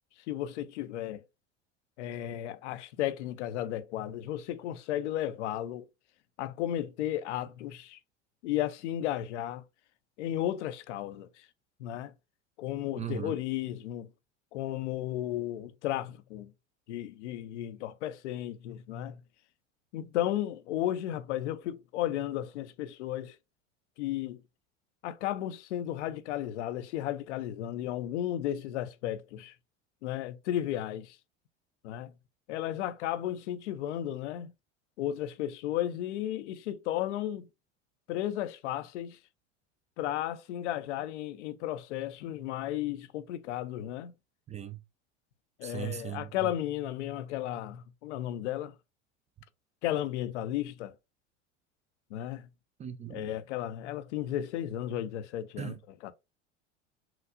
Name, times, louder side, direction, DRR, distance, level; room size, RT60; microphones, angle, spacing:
voice 1, 0.3-1.2 2.0-5.9 6.4-8.0 8.4-9.6 10.2-11.5 11.8-12.1 12.6-14.1 14.5-16.5 16.9-19.2 19.9-23.4 24.0-24.4 25.0-29.5 30.0-31.2 31.8-32.1 32.5-34.5 35.0-37.5 38.1-39.2 40.0-44.1 45.6-48.7 49.8-50.9 52.1-52.5 53.1-56.1, left 12 dB, 70° left, 0.6 m, -34 dB
voice 2, 13.0-13.4 44.5-44.8 45.6-46.5 52.8-53.3 55.6-55.8, right 10 dB, 20° right, 0.4 m, -38 dB
5.9 x 2.5 x 2.4 m
hypercardioid pair, 80°, 36 cm